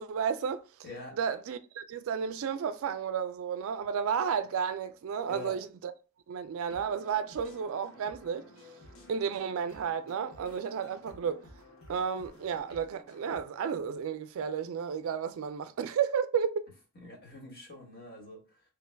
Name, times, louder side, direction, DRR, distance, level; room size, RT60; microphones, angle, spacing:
voice 1, 0.0-0.6 1.1-5.9 6.3-8.5 9.1-11.4 11.9-16.6, right 7 dB, 65° right, 0.3 m, -32 dB
voice 2, 0.8-1.2 5.3-5.6 17.0-18.6, left 2 dB, 45° left, 1.3 m, -44 dB
sound 1, 6.6-13.4, left 1 dB, 70° left, 0.9 m, -54 dB
3.3 x 2.2 x 3.2 m
head